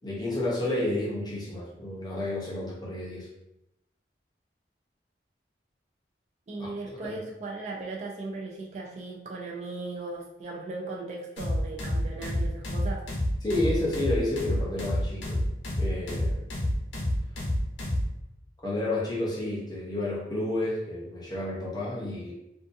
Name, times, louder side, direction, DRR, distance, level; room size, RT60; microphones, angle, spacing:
voice 1, 0.0-3.3 6.6-6.7 7.0-7.2 13.4-15.4 15.8-16.5 18.6-22.3, left 1 dB, 20° left, -5 dB, 0.6 m, -30 dB
voice 2, 6.5-13.0, right 3 dB, 40° right, -2 dB, 0.3 m, -37 dB
sound 1, 11.4-18.1, left 1 dB, 85° left, 0.7 m, -28 dB
2.5 x 2.3 x 2.5 m, 0.86 s
head